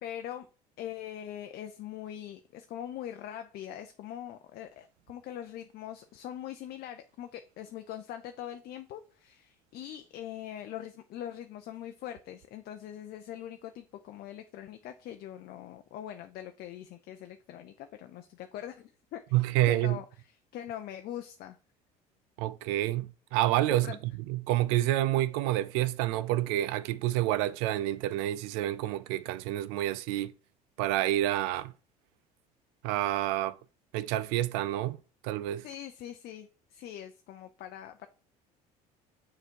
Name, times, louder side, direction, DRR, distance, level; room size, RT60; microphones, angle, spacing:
voice 1, 0.0-0.5 0.8-20.1 20.5-21.6 23.7-24.0 35.6-38.1, left 11 dB, 50° left, 0.6 m, -42 dB
voice 2, 19.3-20.0 22.4-30.3 30.8-31.7 32.8-33.6 33.9-35.0 35.2-35.6, right 14 dB, 65° right, 0.4 m, -28 dB
6.6 x 3.9 x 4.5 m
hypercardioid pair, 65°, 20 cm